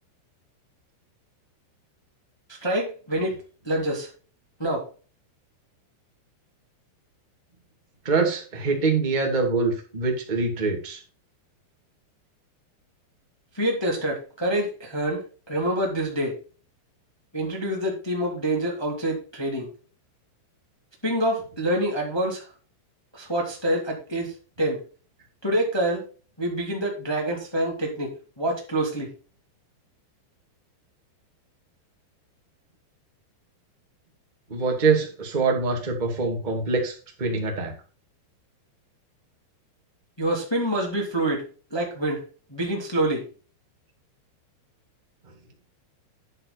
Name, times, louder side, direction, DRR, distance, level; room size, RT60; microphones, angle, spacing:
voice 1, 2.5-4.1 4.6-4.9 13.5-16.3 17.3-19.7 21.0-22.5 23.1-24.8 25.4-26.0 26.4-29.1 40.2-41.4 41.7-42.2 42.5-43.2, right 1 dB, 10° left, -1 dB, 1.8 m, -26 dB
voice 2, 8.0-11.0 34.5-37.7, right 4 dB, 30° right, 1 dB, 0.7 m, -24 dB
10.0 x 7.5 x 4.1 m, 0.37 s
omnidirectional pair, 5.4 m